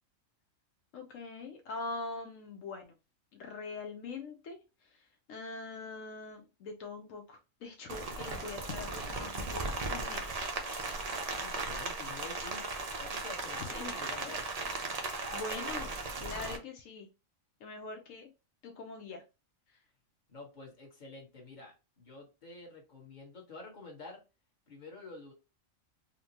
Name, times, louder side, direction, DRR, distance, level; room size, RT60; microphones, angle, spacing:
voice 1, 0.9-2.9 3.3-10.5 13.6-14.0 15.0-17.1 17.6-18.3 18.6-19.2, left 3 dB, 80° left, 4 dB, 1.0 m, -43 dB
Rain, 7.9-16.6, right 3 dB, 45° right, 0.5 m, -37 dB
voice 2, 11.3-14.5 20.3-24.2 24.7-25.3, left 3 dB, 35° left, -1 dB, 1.2 m, -49 dB
4.0 x 2.1 x 2.8 m, 0.28 s
omnidirectional pair, 1.4 m